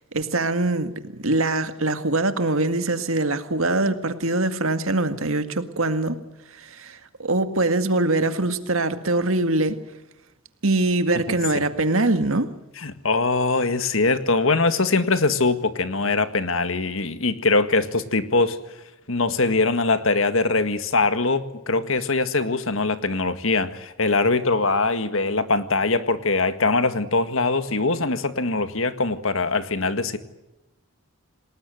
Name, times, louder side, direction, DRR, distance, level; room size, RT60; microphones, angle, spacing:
voice 1, 0.1-0.9 1.2-6.2 6.5-9.8 10.6-12.5, right 2 dB, 70° right, 2.0 m, -23 dB
voice 2, 12.8-18.6 19.1-30.2, left 3 dB, 65° left, 1.9 m, -22 dB
28.5 x 19.5 x 7.9 m
head